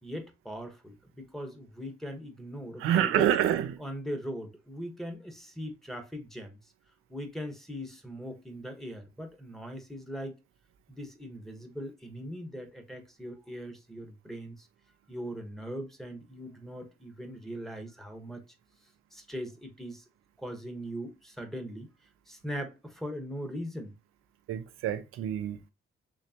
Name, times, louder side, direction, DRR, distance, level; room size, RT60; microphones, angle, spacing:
voice 1, 0.0-3.3 3.8-6.6 7.1-10.4 10.9-14.7 15.1-18.4 19.1-20.0 20.4-21.9 22.3-23.9, equal, ahead, 1.1 m, -40 dB
voice 2, 2.8-3.8 24.5-25.7, right 11 dB, 85° right, 0.5 m, -27 dB
3.8 x 3.2 x 2.8 m
supercardioid pair, 60°, 21 cm